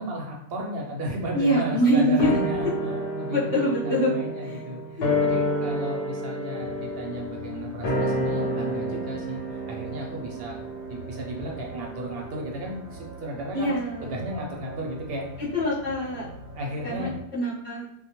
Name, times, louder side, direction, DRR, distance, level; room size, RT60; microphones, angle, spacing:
voice 1, 0.0-10.6 10.9-15.3 16.5-17.1, right 1 dB, 65° right, 0 dB, 0.7 m, -34 dB
voice 2, 1.3-2.4 3.3-4.1 4.4-4.6 13.5-14.2 15.5-16.3 16.8-17.8, equal, 40° left, -11 dB, 0.5 m, -24 dB
sound 1, 2.2-12.8 13.1-13.2, left 1 dB, 65° left, 0.8 m, -30 dB
sound 2, 6.6-17.2, right 2 dB, 85° right, 0.9 m, -44 dB
2.2 x 2.1 x 2.8 m, 0.73 s
omnidirectional pair, 1.2 m